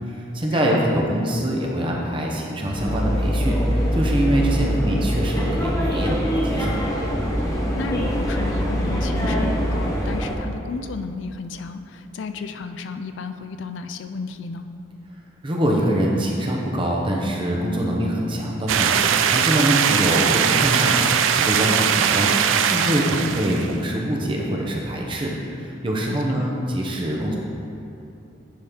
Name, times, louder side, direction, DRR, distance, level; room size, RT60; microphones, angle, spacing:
voice 1, 0.1-6.8 15.4-21.0 21.3-22.3 22.6-27.4, equal, 25° right, -1 dB, 0.8 m, -24 dB
sound 1, 2.7-10.4, equal, 15° left, 0.7 m, -23 dB
voice 2, 7.5-14.7 26.1-26.5, left 4 dB, 70° left, 8 dB, 0.3 m, -33 dB
sound 2, 18.7-23.7, right 8 dB, 80° right, 0.3 m, -20 dB
9.9 x 4.3 x 3.7 m, 2.8 s
head